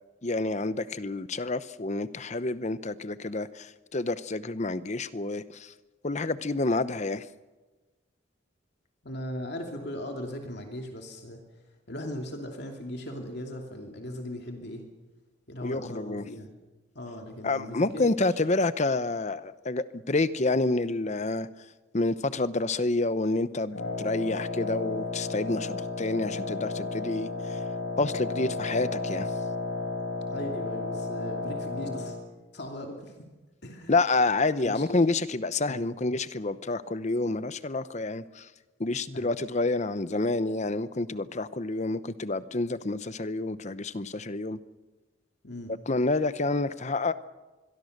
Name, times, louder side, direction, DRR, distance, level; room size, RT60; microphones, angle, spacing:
voice 1, 0.2-5.7 6.0-7.3 15.6-16.3 17.4-21.5 21.9-27.6 28.0-29.3 33.9-38.5 38.8-44.6 45.9-47.2, left 2 dB, 35° left, 14 dB, 0.8 m, -28 dB
voice 2, 9.0-11.4 11.9-14.8 15.5-16.5 16.9-18.1 30.3-32.2 32.5-33.3 33.6-34.0 34.6-35.0 35.7-35.8 39.1-39.3 45.4-45.7, left 1 dB, 55° left, 2 dB, 2.8 m, -38 dB
Wind instrument woodwind instrument, 23.7-32.3, left 3 dB, 85° left, 4.1 m, -33 dB
26.0 x 22.5 x 6.6 m, 1.2 s
head